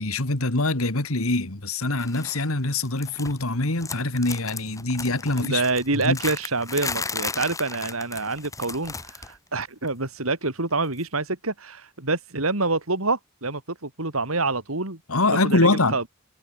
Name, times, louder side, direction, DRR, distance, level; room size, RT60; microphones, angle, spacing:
voice 1, 0.0-5.6 5.9-6.2 15.1-16.0, left 2 dB, 85° left, 2.6 m, -24 dB
sound 1, 2.0-2.4 2.7-3.5 3.8-9.4 9.6-9.9 11.0-11.1, left 4 dB, 15° left, 2.9 m, -35 dB
voice 2, 5.4-15.0 15.5-16.1, right 3 dB, 85° right, 3.7 m, -27 dB
head